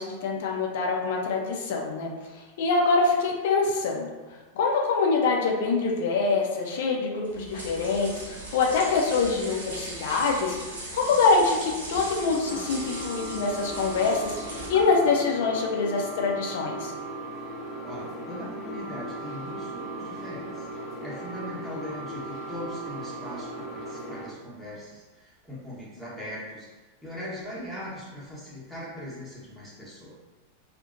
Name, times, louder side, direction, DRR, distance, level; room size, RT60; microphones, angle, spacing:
voice 1, 0.0-2.1 2.4-4.1 4.5-16.9, left 4 dB, 55° left, 0 dB, 0.4 m, -25 dB
sound 1, 7.2-15.1, right 1 dB, 65° right, 0.7 m, -39 dB
sound 2, 12.4-24.3, right 1 dB, 25° left, 0.7 m, -37 dB
voice 2, 17.8-20.7 21.0-30.2, equal, ahead, -9 dB, 1.0 m, -40 dB
2.8 x 2.1 x 2.4 m, 1.2 s
figure-of-eight pair, 90°, 0 cm